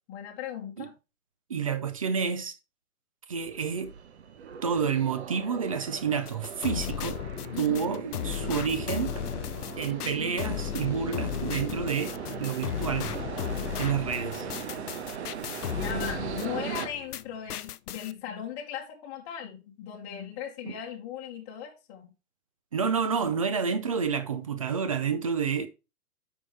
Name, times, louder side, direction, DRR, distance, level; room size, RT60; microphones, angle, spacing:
voice 1, 0.1-0.9 7.5-7.9 15.7-22.1, left 9 dB, 20° left, 1.3 m, -38 dB
voice 2, 1.5-2.6 3.3-3.9 4.6-7.2 7.6-9.1 9.8-13.2 13.8-14.5 20.6-20.7 22.7-25.7, right 6 dB, 25° right, 0.5 m, -29 dB
sound 1, 3.4-16.9, right 7 dB, 45° right, 1.1 m, -39 dB
sound 2, 6.3-17.2 17.5-18.1, left 10 dB, 90° left, 0.6 m, -35 dB
9.1 x 5.5 x 3.1 m
hypercardioid pair, 150°, 45 cm